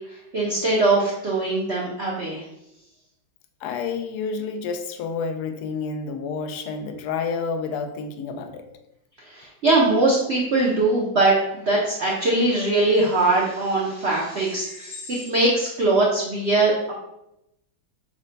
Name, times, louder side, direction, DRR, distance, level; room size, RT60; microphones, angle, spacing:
voice 1, 0.1-2.4 9.2-16.9, right 2 dB, 90° right, -3 dB, 0.5 m, -21 dB
voice 2, 3.6-8.7, left 5 dB, 75° left, 6 dB, 0.9 m, -29 dB
6.4 x 2.1 x 3.9 m, 0.85 s
omnidirectional pair, 2.1 m